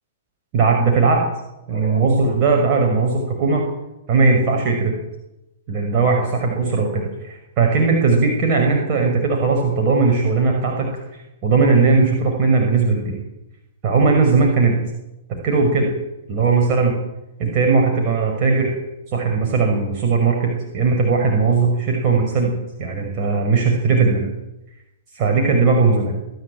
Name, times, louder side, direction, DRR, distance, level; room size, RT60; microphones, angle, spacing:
voice 1, 0.5-1.3 1.7-3.6 4.1-4.9 5.7-10.9 11.4-13.2 13.8-14.8 15.4-15.9 16.3-16.9 17.4-18.7 19.1-22.5 22.8-24.3 25.1-26.1, right 4 dB, 40° right, 1 dB, 5.8 m, -18 dB
26.5 x 11.5 x 9.0 m, 0.93 s
figure-of-eight pair, 110°, 0 cm